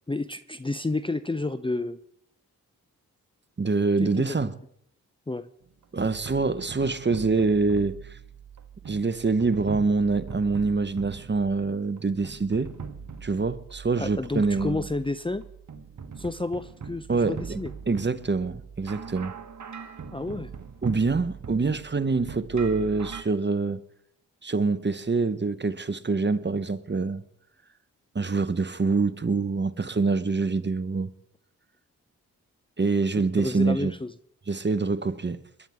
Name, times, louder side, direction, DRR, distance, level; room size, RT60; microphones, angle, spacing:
voice 1, 0.1-2.0 4.0-4.4 5.3-5.5 14.0-15.5 16.2-17.7 20.1-20.5 33.4-34.1, left 2 dB, 15° left, 0.6 m, -30 dB
voice 2, 3.6-4.5 5.9-8.2 8.9-12.7 13.2-14.8 17.1-17.6 17.9-19.3 20.8-23.8 24.4-27.2 28.1-31.1 32.8-33.9 34.5-35.4, right 4 dB, 30° right, 1.0 m, -25 dB
sound 1, 5.6-23.2, right 6 dB, 50° right, 1.5 m, -41 dB
22.0 x 11.0 x 3.6 m
supercardioid pair, 40°, 36 cm